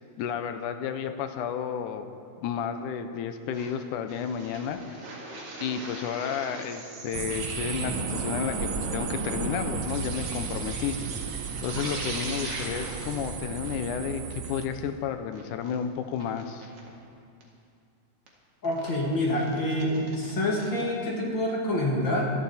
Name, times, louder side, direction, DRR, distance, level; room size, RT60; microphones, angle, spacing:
voice 1, 0.2-2.1 2.4-5.1 5.6-11.0 11.6-16.7, left 7 dB, 80° left, 8 dB, 2.1 m, -32 dB
sound 1, 3.5-3.7 4.1-13.3 13.6-13.7 14.0-14.1 14.4-14.5 14.8-14.9 15.3-15.7 16.2-16.9 17.4-17.5 18.3-18.4 18.6-18.9 19.3-20.8, right 2 dB, 50° right, 2.7 m, -38 dB
sound 2, 7.1-14.7, right 6 dB, 70° right, 1.7 m, -34 dB
voice 2, 18.6-22.3, left 1 dB, 40° left, -2 dB, 2.2 m, -27 dB
26.0 x 10.5 x 4.2 m, 2.4 s
omnidirectional pair, 3.9 m